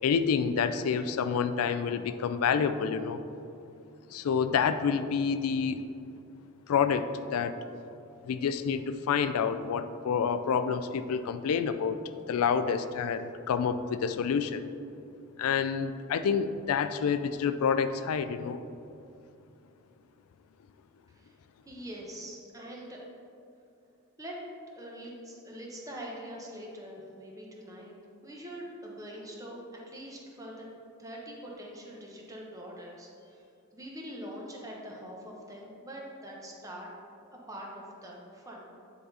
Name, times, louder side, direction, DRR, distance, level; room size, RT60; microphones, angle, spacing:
voice 1, 0.0-3.2 4.1-5.8 6.7-7.5 8.2-12.0 12.3-14.7 15.4-18.6, left 6 dB, 85° left, 10 dB, 0.3 m, -28 dB
voice 2, 21.6-23.0 24.2-24.4 24.7-27.9 28.2-30.7 31.0-33.4 33.7-36.9 37.3-38.7, equal, 15° right, -2 dB, 1.0 m, -43 dB
9.2 x 4.0 x 4.1 m, 2.6 s
head